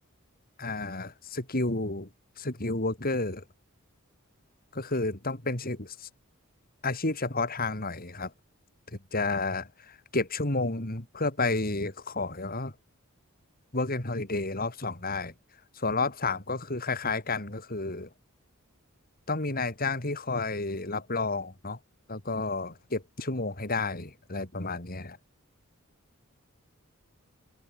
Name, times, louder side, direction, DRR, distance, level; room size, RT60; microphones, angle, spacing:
voice 1, 0.6-2.1 2.4-3.4 4.7-6.1 6.8-8.3 9.1-12.7 13.7-15.3 15.8-18.1 19.3-21.8 22.1-25.2, left 3 dB, 45° left, 3.6 m, -31 dB
open air
head